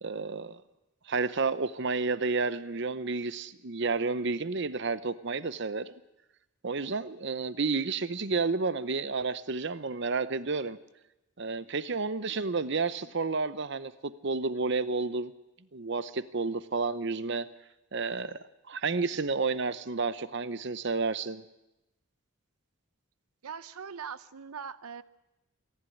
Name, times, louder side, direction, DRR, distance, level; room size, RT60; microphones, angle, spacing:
voice 1, 0.0-0.6 1.1-5.9 6.6-10.8 11.4-15.3 15.7-17.5 17.9-18.4 18.7-21.4, right 4 dB, 55° right, 15 dB, 0.8 m, -31 dB
voice 2, 23.4-25.0, right 6 dB, 85° right, 15 dB, 0.7 m, -41 dB
27.0 x 11.0 x 10.0 m, 0.93 s
head